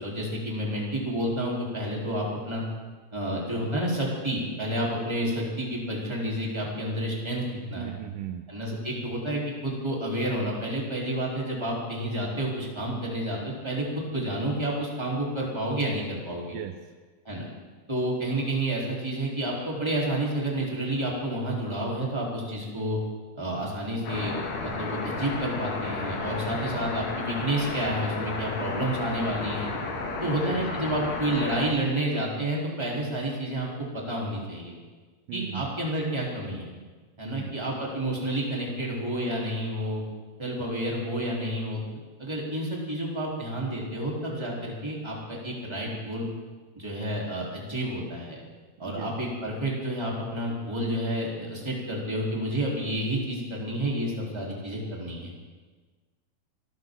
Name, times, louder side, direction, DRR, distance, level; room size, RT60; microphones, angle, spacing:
voice 1, 0.0-2.6 3.1-7.9 8.5-16.5 17.2-17.5 17.9-23.0 23.3-24.3 24.6-29.7 30.2-34.7 35.3-36.7 37.2-40.0 40.4-41.8 42.2-46.2 46.7-48.4 48.8-55.3, right 1 dB, 5° right, -3 dB, 2.9 m, -30 dB
voice 2, 7.6-8.5 16.4-16.9 30.2-30.6 35.3-35.7 37.3-37.5 48.8-49.1, right 12 dB, 90° right, 7 dB, 1.8 m, -38 dB
sound 1, 24.0-31.7, left 3 dB, 85° left, 4.2 m, -33 dB
25.5 x 14.5 x 3.8 m, 1.4 s
omnidirectional pair, 4.6 m